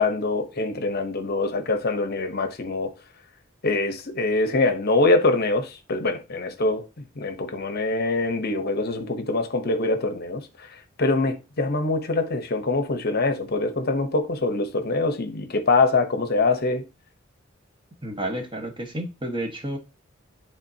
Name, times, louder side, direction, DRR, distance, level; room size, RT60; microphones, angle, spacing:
voice 1, 0.0-2.9 3.6-6.8 7.2-10.4 11.0-16.8, left 3 dB, 50° left, 0.9 m, -24 dB
voice 2, 18.0-19.8, right 1 dB, 25° right, 1.3 m, -31 dB
10.5 x 3.7 x 2.8 m
head